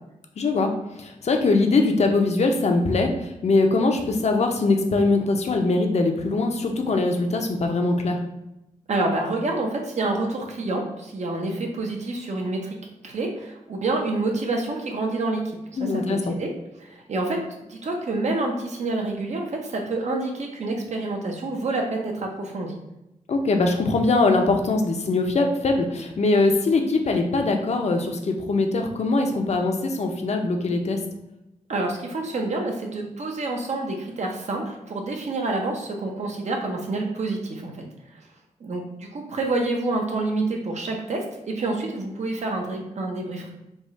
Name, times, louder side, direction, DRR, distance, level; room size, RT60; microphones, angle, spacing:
voice 1, 0.4-0.7 1.0-8.2 15.8-16.3 23.3-31.0, left 3 dB, 55° left, 3 dB, 0.7 m, -22 dB
voice 2, 8.9-12.6 13.0-16.5 16.8-17.4 17.7-22.7 31.7-37.7 38.6-43.5, right 2 dB, 60° right, 1 dB, 0.9 m, -28 dB
3.5 x 2.4 x 4.1 m, 0.92 s
cardioid pair, 65°, 13 cm